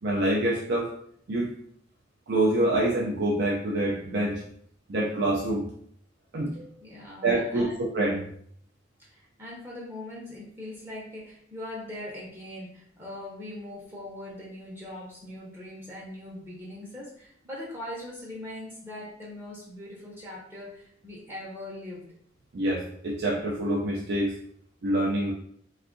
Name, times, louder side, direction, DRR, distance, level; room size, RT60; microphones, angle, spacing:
voice 1, 0.0-0.9 1.3-1.5 2.3-4.4 4.9-5.6 6.3-6.7 7.2-8.2 22.5-24.3 24.8-25.3, right 1 dB, 55° right, -3 dB, 0.5 m, -26 dB
voice 2, 6.8-7.9 9.0-22.1, left 1 dB, 10° right, -6 dB, 0.7 m, -41 dB
2.6 x 2.4 x 3.7 m, 0.65 s
head